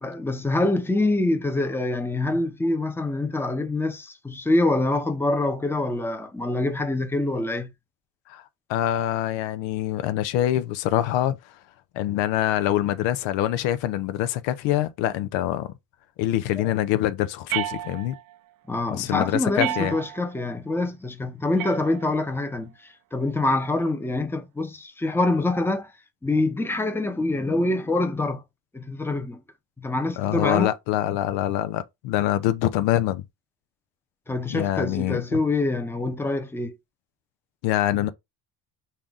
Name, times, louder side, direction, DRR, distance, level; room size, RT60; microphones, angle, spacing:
voice 1, 0.0-7.7 16.6-16.7 18.7-25.9 26.2-28.4 28.7-29.4 29.8-30.7 34.3-36.7, left 2 dB, 5° left, 0.8 m, -25 dB
voice 2, 8.7-11.4 11.9-15.7 16.2-18.2 18.9-19.9 30.2-33.2 34.5-35.4 37.6-38.1, left 13 dB, 75° left, 0.7 m, -25 dB
sound 1, 17.5-18.4 19.6-20.4 21.6-22.4, right 14 dB, 50° right, 0.6 m, -32 dB
5.7 x 2.6 x 3.6 m
supercardioid pair, 95°, 44 cm